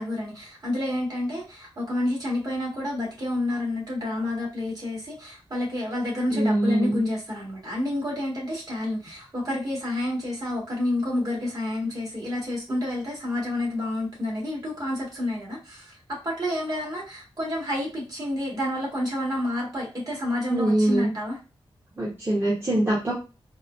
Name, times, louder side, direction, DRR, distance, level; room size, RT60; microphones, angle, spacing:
voice 1, 0.0-21.4, left 1 dB, 40° right, -4 dB, 1.9 m, -29 dB
voice 2, 6.3-7.0 20.5-21.1 22.0-23.1, right 1 dB, 25° right, -7 dB, 1.1 m, -23 dB
4.2 x 2.3 x 2.6 m, 0.30 s
wide cardioid pair, 135°, 10 cm